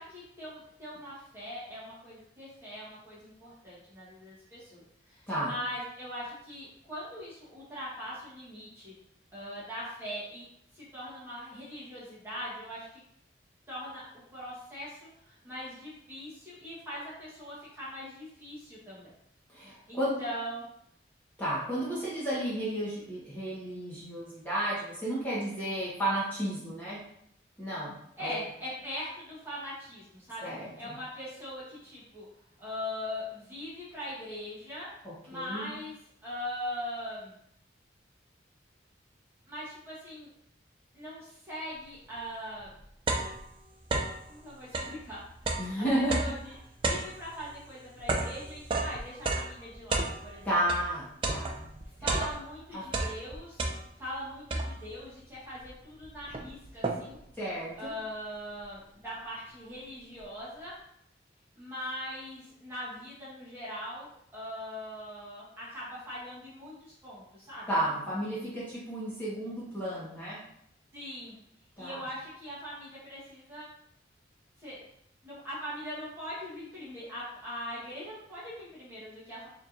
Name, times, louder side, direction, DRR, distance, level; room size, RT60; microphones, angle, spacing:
voice 1, 0.0-8.9 9.3-10.5 10.7-13.0 13.7-19.1 19.9-20.7 25.6-25.8 28.2-30.5 30.8-32.3 32.6-34.9 35.2-35.9 36.2-37.4 39.5-40.3 40.9-42.8 44.3-45.6 45.9-46.5 46.9-50.5 51.8-53.6 54.0-57.2 57.8-60.7 61.6-67.7 70.9-71.4 71.8-73.7 74.6-74.8 75.2-79.5, equal, 15° right, -9 dB, 1.2 m, -41 dB
voice 2, 19.5-20.1 21.4-27.0 27.6-27.9 28.2-28.4 30.4-30.9 35.0-35.7 45.6-46.2 50.4-51.7 52.0-52.2 52.7-52.8 57.4-57.9 67.7-70.4 71.8-72.0, right 1 dB, 10° left, -10 dB, 1.2 m, -32 dB
sound 1, 42.2-42.3 42.6-44.3 44.6-50.9 51.2-52.6 52.9-54.1 54.5-55.0 55.7-55.8 56.0-57.3, right 2 dB, 30° right, 0.3 m, -33 dB
4.4 x 2.9 x 2.5 m, 0.72 s
head